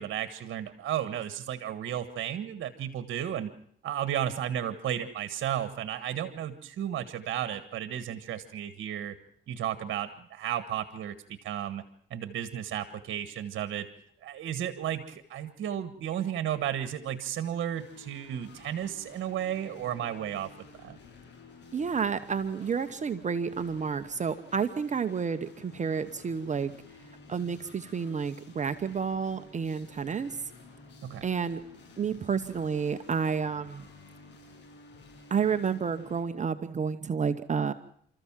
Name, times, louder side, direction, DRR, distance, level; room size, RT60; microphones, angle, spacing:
voice 1, 0.0-3.5 3.8-9.1 9.5-11.8 12.1-13.9 14.2-20.5 20.8-21.0 31.0-31.2, right 10 dB, 70° right, 11 dB, 1.5 m, -33 dB
sound 1, 17.7-36.2, left 3 dB, 65° left, 7.6 m, -52 dB
voice 2, 21.7-26.7 27.3-30.4 31.2-31.6 32.0-33.9 35.3-37.7, right 6 dB, 40° right, 9 dB, 1.0 m, -30 dB
29.5 x 14.0 x 7.4 m, 0.65 s
cardioid pair, 90°, 20 cm